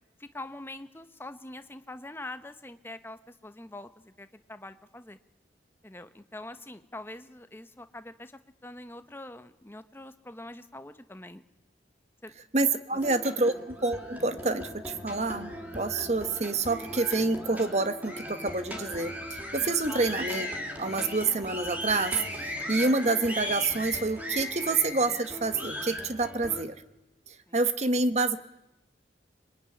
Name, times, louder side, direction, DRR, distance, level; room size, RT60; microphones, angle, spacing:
voice 1, 0.2-5.2 5.8-11.4 12.2-12.3 13.4-13.5 19.9-20.1 27.5-27.6, left 2 dB, 10° left, 10 dB, 1.0 m, -44 dB
voice 2, 12.5-20.5 20.8-26.7 27.5-28.4, right 3 dB, 35° right, 11 dB, 1.2 m, -28 dB
sound 1, 12.9-26.6, left 1 dB, 10° right, 2.9 m, -38 dB
26.0 x 22.5 x 9.9 m, 0.95 s
head